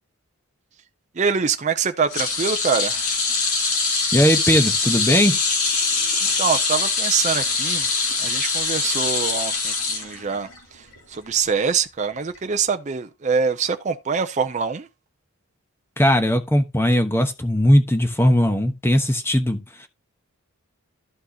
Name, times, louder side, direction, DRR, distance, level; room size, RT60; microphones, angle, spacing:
voice 1, 1.2-3.1 6.4-7.9 8.2-14.9, right 6 dB, 35° right, 0.5 m, -24 dB
sound 1, 2.1-10.6 10.9-11.2 12.3-12.4, left 4 dB, 80° left, 3.5 m, -23 dB
voice 2, 4.1-5.4 16.0-19.9, equal, 10° left, 1.0 m, -19 dB
13.0 x 4.6 x 2.8 m
head